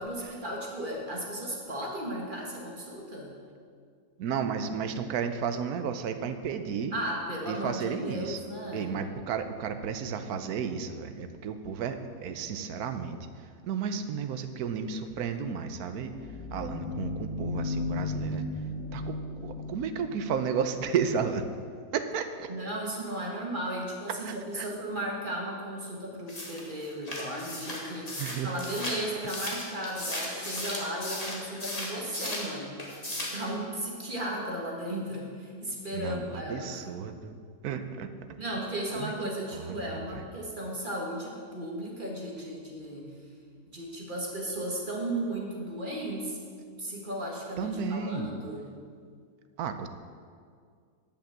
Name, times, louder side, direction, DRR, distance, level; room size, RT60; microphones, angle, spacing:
voice 1, 0.0-3.3 6.9-9.0 22.5-36.8 38.4-43.1 43.7-46.4 46.8-48.7, right 1 dB, 35° right, -2 dB, 1.7 m, -35 dB
voice 2, 4.2-7.0 7.5-8.4 8.7-16.1 16.5-18.5 18.9-21.5 21.9-22.5 24.2-24.7 28.2-28.5 35.9-38.1 38.9-39.1 39.5-40.2 47.6-48.3 49.6-49.9, right 6 dB, 85° right, 9 dB, 1.2 m, -33 dB
sound 1, 15.6-21.0, left 3 dB, 65° left, 1.5 m, -35 dB
sound 2, 26.3-32.5 32.8-33.4, left 1 dB, 25° left, 1.8 m, -36 dB
10.5 x 5.8 x 7.4 m, 2.1 s
omnidirectional pair, 1.6 m